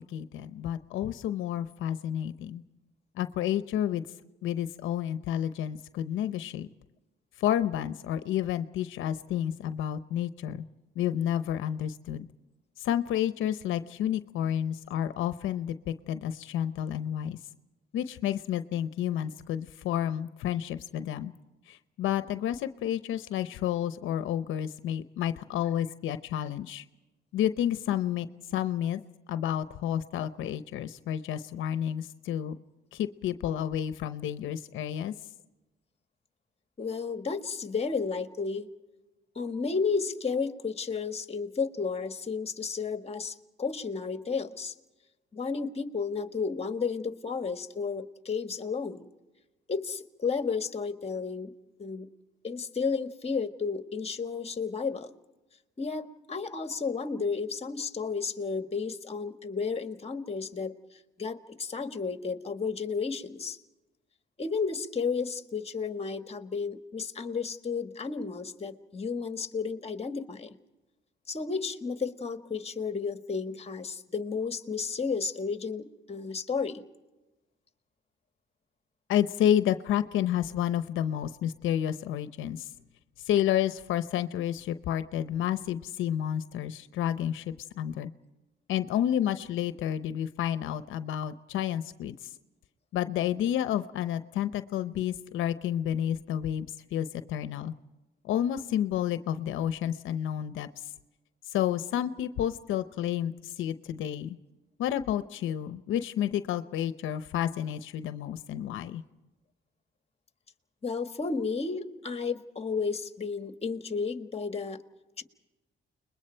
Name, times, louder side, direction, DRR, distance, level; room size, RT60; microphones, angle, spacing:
voice 1, 0.0-2.6 3.2-4.0 4.4-6.7 7.4-10.6 11.0-12.3 12.8-17.4 17.9-21.3 21.7-26.8 27.3-28.3 28.5-29.0 29.3-32.6 32.9-35.1 79.1-82.7 83.2-88.1 88.7-92.3 92.9-97.7 98.2-100.7 101.5-104.4 104.8-109.0, left 10 dB, 80° left, 12 dB, 0.8 m, -30 dB
voice 2, 36.8-38.7 39.3-44.7 45.3-49.1 49.7-51.5 51.8-52.1 52.4-55.1 55.8-60.7 61.2-63.6 64.4-70.5 71.3-76.8 110.8-114.8 115.2-115.3, left 5 dB, 30° left, 8 dB, 1.6 m, -32 dB
30.0 x 21.5 x 4.5 m, 1.1 s
cardioid pair, 90°, 20 cm